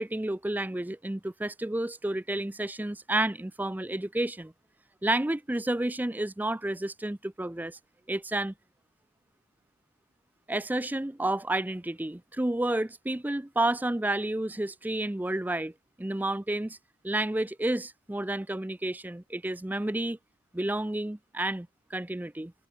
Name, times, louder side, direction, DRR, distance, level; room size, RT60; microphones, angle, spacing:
voice 1, 0.0-4.5 5.0-7.8 8.1-8.5 10.5-15.7 16.0-16.8 17.0-20.2 20.5-22.5, right 1 dB, 10° right, 0.4 m, -30 dB
head